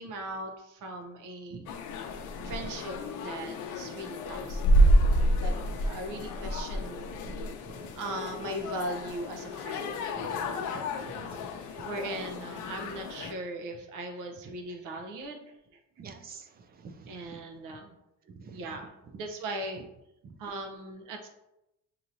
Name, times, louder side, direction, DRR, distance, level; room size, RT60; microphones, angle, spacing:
voice 1, 0.0-1.6 2.4-3.0 3.2-4.6 5.4-7.1 8.0-9.9 11.7-15.5 17.1-17.9 18.5-18.9 19.1-19.9 20.4-21.3, right 1 dB, 85° right, 4 dB, 0.9 m, -39 dB
sound 1, 1.7-13.3, equal, 70° left, 0.6 m, -29 dB
voice 2, 10.2-10.5 10.7-11.5 11.8-11.9 16.0-16.4 16.8-17.1 18.4-18.6 20.2-20.3, right 4 dB, 30° right, 7 dB, 0.4 m, -47 dB
6.5 x 2.9 x 2.6 m, 0.88 s
cardioid pair, 155°, 31 cm